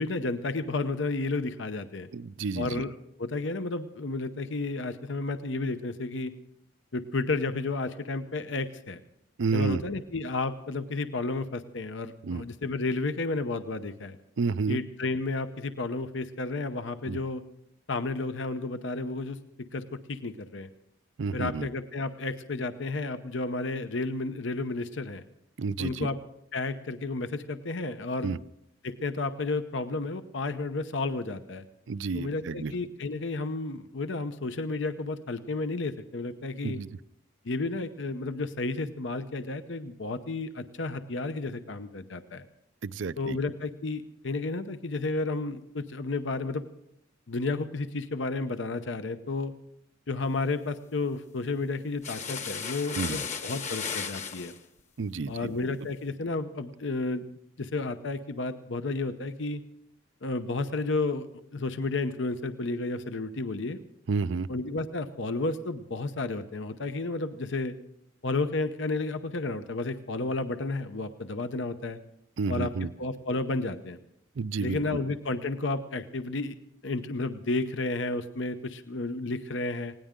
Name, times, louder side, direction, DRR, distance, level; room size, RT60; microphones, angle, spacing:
voice 1, 0.0-2.1 2.6-6.3 6.9-9.0 9.5-14.2 14.7-17.4 17.9-19.4 19.7-20.7 21.3-25.2 25.8-26.2 26.5-28.4 28.8-31.6 32.1-36.8 37.4-42.4 43.2-46.6 47.3-49.5 50.1-54.5 55.3-57.2 57.6-59.6 60.2-61.3 61.5-63.8 64.5-67.8 68.2-72.0 72.5-72.7 73.0-74.0 74.6-76.6 76.8-79.9, left 3 dB, 70° left, 10 dB, 0.8 m, -32 dB
voice 2, 2.1-2.8 9.4-9.8 12.2-12.4 14.4-14.8 17.1-17.2 21.2-21.7 25.6-26.1 28.2-28.4 31.9-32.7 36.6-36.9 42.8-43.4 53.0-53.2 55.0-55.3 64.1-64.5 72.4-72.9 74.4-74.8, right 4 dB, 70° right, 17 dB, 0.5 m, -30 dB
sound 1, 52.0-54.6, left 6 dB, 35° left, 1.1 m, -35 dB
19.5 x 18.0 x 3.7 m, 0.76 s
head